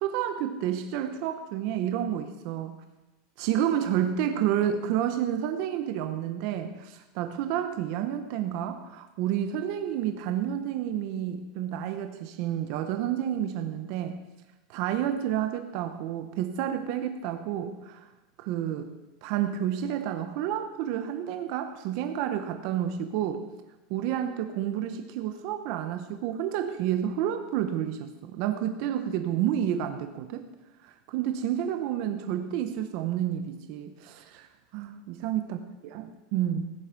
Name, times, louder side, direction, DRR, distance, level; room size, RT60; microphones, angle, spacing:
voice 1, 0.0-2.8 3.4-14.2 14.7-18.1 18.4-23.5 23.9-30.5 30.8-34.5 34.7-35.6 35.8-36.7, right 10 dB, 50° right, 7 dB, 0.9 m, -30 dB
15.5 x 10.5 x 5.2 m, 1.1 s
supercardioid pair, 170°, 0 cm